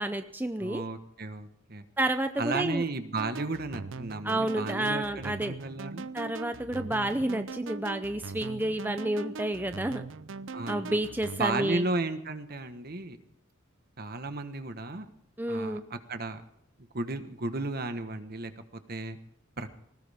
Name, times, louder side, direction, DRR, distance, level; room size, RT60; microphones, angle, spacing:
voice 1, 0.0-0.8 2.0-2.8 4.2-5.6 6.1-10.1 10.7-11.8 15.4-15.8, right 1 dB, 10° right, 8 dB, 0.6 m, -30 dB
voice 2, 0.6-1.8 2.4-6.1 10.5-11.0 11.4-13.2 14.0-15.1 15.5-16.4 16.9-18.5 18.9-19.2 19.6-19.8, right 2 dB, 50° right, 9 dB, 1.3 m, -34 dB
sound 1, 3.2-11.4, right 4 dB, 70° right, 0.6 m, -41 dB
20.0 x 18.5 x 3.6 m, 0.74 s
head